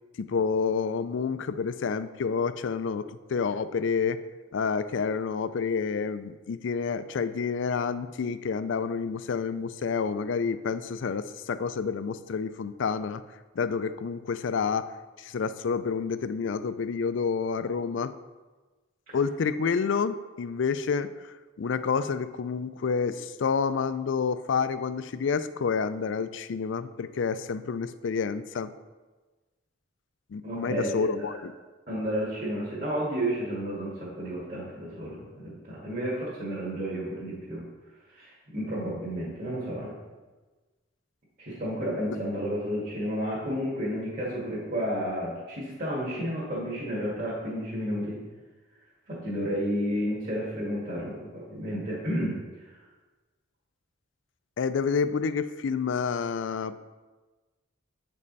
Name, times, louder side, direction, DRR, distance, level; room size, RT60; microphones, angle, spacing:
voice 1, 0.2-4.2 4.5-13.2 13.6-14.9 15.2-18.1 19.1-28.7 30.3-31.5 54.6-56.8, left 5 dB, 70° left, 13 dB, 0.4 m, -29 dB
voice 2, 30.4-31.4 31.9-37.6 38.1-39.9 41.4-48.2 49.1-52.7, equal, 45° right, -8 dB, 2.1 m, -32 dB
8.5 x 5.3 x 4.0 m, 1.3 s
head